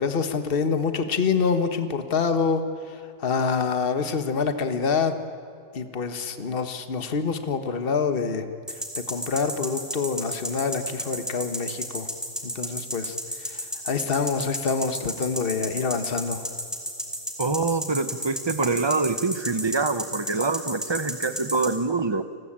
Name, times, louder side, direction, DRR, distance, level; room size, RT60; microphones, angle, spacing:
voice 1, 0.0-2.6 3.2-5.1 5.7-8.4 9.1-12.1 12.4-13.2 13.4-16.4, left 5 dB, 35° left, 9 dB, 1.5 m, -26 dB
sound 1, 8.7-21.7, equal, ahead, 3.6 m, -31 dB
voice 2, 17.4-22.2, right 3 dB, 25° right, 12 dB, 0.7 m, -25 dB
29.5 x 21.0 x 8.8 m, 2.4 s
omnidirectional pair, 1.7 m